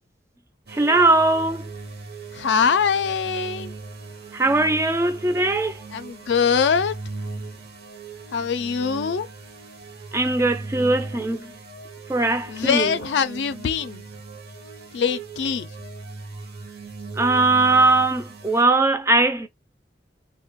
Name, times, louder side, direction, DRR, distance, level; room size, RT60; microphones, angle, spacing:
voice 1, 0.7-1.7 4.3-5.8 10.1-11.5 12.1-13.0 17.2-19.5, right 2 dB, 15° right, 0.3 m, -20 dB
sound 1, 0.7-18.6, right 3 dB, 60° right, 0.7 m, -38 dB
voice 2, 2.3-3.7 5.9-6.9 8.3-9.3 12.5-14.0 14.9-15.7, left 6 dB, 80° left, 0.4 m, -23 dB
3.5 x 2.1 x 2.9 m
head